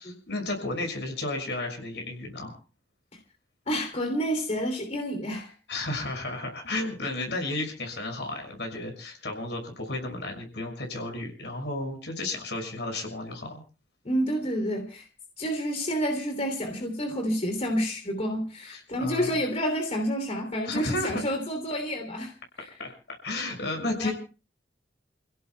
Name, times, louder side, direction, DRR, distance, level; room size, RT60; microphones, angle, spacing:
voice 1, 0.3-2.6 5.7-13.5 18.7-19.4 20.6-21.4 22.8-22.9 23.2-24.1, left 2 dB, 75° left, 6.2 m, -33 dB
voice 2, 3.7-5.5 14.0-15.1 15.4-22.3 22.6-22.7 23.9-24.1, equal, 40° left, 3.1 m, -29 dB
29.5 x 16.5 x 2.3 m
head